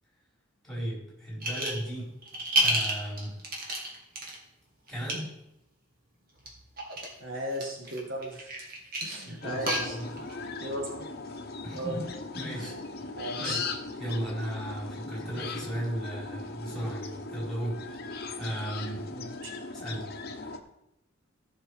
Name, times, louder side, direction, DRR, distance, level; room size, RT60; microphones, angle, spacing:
voice 1, 0.6-2.1 2.6-3.4 4.9-5.3 9.2-10.7 11.6-12.0 12.3-13.1 13.4-13.6 14.0-19.1 19.7-20.1, right 1 dB, ahead, -5 dB, 4.4 m, -36 dB
sound 1, 1.4-1.9 2.2-4.3 4.9-5.1 6.4-7.1 7.5-10.3, right 1 dB, 45° right, 2.4 m, -30 dB
voice 2, 7.2-8.5 9.0-10.0 10.6-11.1 11.7-12.0 12.5-12.7 13.2-13.6 19.1-19.5, right 1 dB, 65° right, 1 dB, 1.7 m, -36 dB
sound 2, 9.4-20.6, left 4 dB, 50° left, 1.0 m, -38 dB
15.0 x 6.0 x 4.9 m, 0.86 s
head